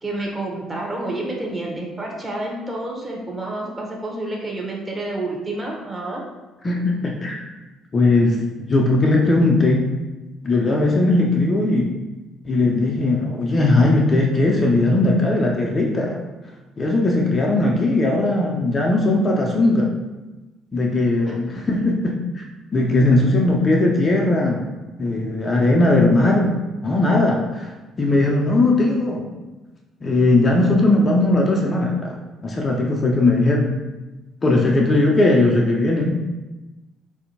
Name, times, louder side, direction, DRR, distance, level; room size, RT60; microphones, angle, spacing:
voice 1, 0.0-6.2 21.3-21.4 22.9-23.1, right 2 dB, 20° right, -2 dB, 0.9 m, -29 dB
voice 2, 6.6-7.5 7.9-10.0 10.4-11.9 12.4-16.2 16.8-19.9 20.7-22.4 22.7-24.6 25.0-27.7 28.0-29.3 30.0-32.2 32.4-33.7 34.4-36.2, left 2 dB, 30° left, -1 dB, 0.5 m, -18 dB
4.1 x 2.6 x 2.7 m, 1.1 s
figure-of-eight pair, 50°, 0 cm